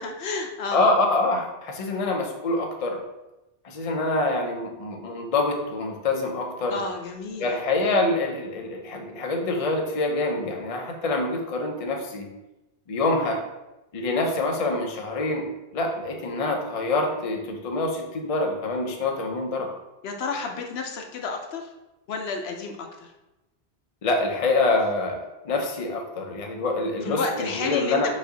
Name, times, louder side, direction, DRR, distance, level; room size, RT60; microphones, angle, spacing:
voice 1, 0.0-0.9 6.7-7.5 20.0-21.7 22.1-23.1 27.0-28.1, left 4 dB, 75° left, 3 dB, 0.8 m, -31 dB
voice 2, 0.7-3.0 3.6-6.8 7.4-12.3 12.9-13.4 13.9-15.5 15.7-19.7 24.0-25.2 25.4-28.1, left 2 dB, 40° left, 2 dB, 0.6 m, -25 dB
4.9 x 2.7 x 3.9 m, 0.99 s
omnidirectional pair, 1.1 m